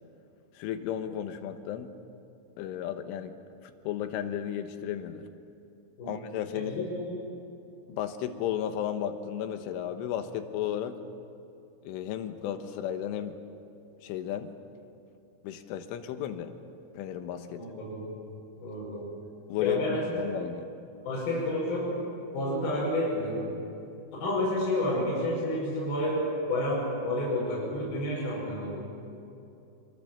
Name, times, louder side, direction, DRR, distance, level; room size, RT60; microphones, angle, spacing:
voice 1, 0.6-1.9 2.6-3.4 3.9-5.3 6.0-6.9 7.9-11.0 11.9-13.4 14.0-14.5 15.4-16.6 17.0-17.7 19.5-20.7, left 10 dB, 80° left, 7 dB, 3.7 m, -34 dB
voice 2, 6.5-7.2 17.6-18.1 18.6-19.1 19.6-20.2 21.0-22.1 22.3-23.5 24.2-28.8, left 1 dB, 50° left, -7 dB, 7.5 m, -30 dB
26.0 x 25.0 x 7.4 m, 2.7 s
omnidirectional pair, 5.7 m